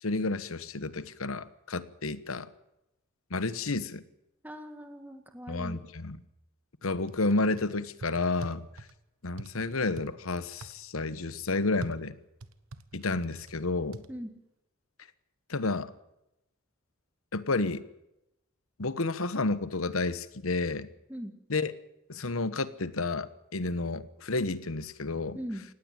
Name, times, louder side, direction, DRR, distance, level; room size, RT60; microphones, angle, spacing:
voice 1, 0.0-2.5 3.3-4.0 5.5-6.2 6.8-8.9 9.2-12.1 12.9-14.0 15.5-15.9 17.3-17.8 18.8-20.9 21.5-21.7 22.1-25.4, left 3 dB, 85° left, 14 dB, 1.2 m, -31 dB
voice 2, 4.4-5.8 14.1-14.3 21.1-21.3 25.3-25.6, equal, 10° right, 6 dB, 1.8 m, -40 dB
sound 1, 7.1-7.6 8.0-8.9 9.4-10.1 10.6-10.8 11.8-13.5 13.9-14.1, right 2 dB, 90° right, 1.3 m, -43 dB
19.0 x 15.5 x 9.1 m, 0.87 s
head